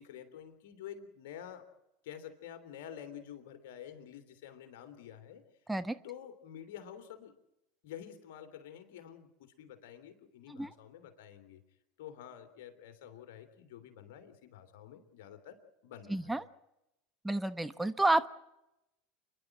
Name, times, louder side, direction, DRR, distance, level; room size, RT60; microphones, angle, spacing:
voice 1, 0.0-1.7 2.0-5.4 6.0-7.3 7.8-11.6 12.0-16.4, left 9 dB, 65° left, 7 dB, 3.1 m, -49 dB
voice 2, 16.1-16.4 17.2-18.3, right 2 dB, 10° right, 12 dB, 1.1 m, -30 dB
29.5 x 11.5 x 9.0 m, 0.88 s
hypercardioid pair, 80°, 0 cm